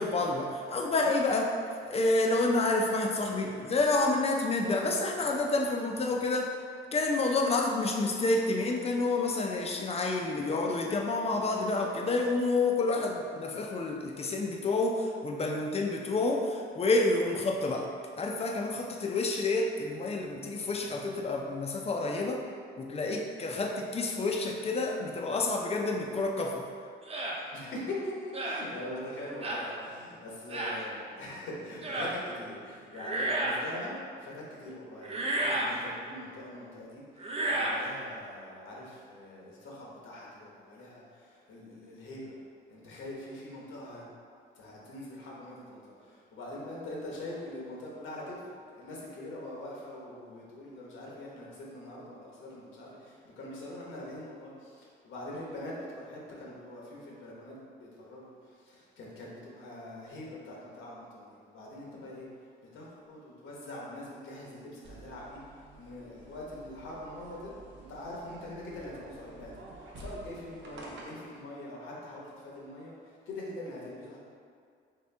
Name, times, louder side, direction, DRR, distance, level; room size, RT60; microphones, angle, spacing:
voice 1, 0.0-1.5 1.8-6.5 6.9-17.9 18.2-22.4 22.8-26.6, left 2 dB, 30° left, 1 dB, 0.5 m, -29 dB
sound 1, 27.1-27.4 28.3-28.6 29.4-29.7 30.5-30.8 31.8-32.1 32.9-33.7 35.0-35.8 37.2-37.8, right 1 dB, 30° right, 0.5 m, -31 dB
voice 2, 27.5-42.4 42.7-44.0 44.5-48.4 48.8-62.3 62.7-65.4 65.8-67.5 67.9-74.2, left 1 dB, 80° left, -4 dB, 1.0 m, -43 dB
sound 2, 64.8-71.4, right 2 dB, 65° right, 0.7 m, -49 dB
3.3 x 2.9 x 3.3 m, 2.2 s
cardioid pair, 90°, 20 cm